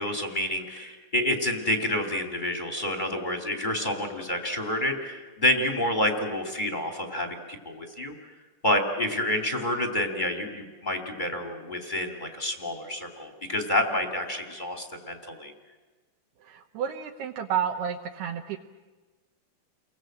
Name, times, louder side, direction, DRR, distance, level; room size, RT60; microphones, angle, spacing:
voice 1, 0.0-8.1 8.6-15.5, left 1 dB, 20° left, 3 dB, 1.3 m, -28 dB
voice 2, 16.5-18.6, right 8 dB, 75° right, 2 dB, 2.8 m, -31 dB
30.0 x 23.0 x 7.8 m, 1.3 s
omnidirectional pair, 5.1 m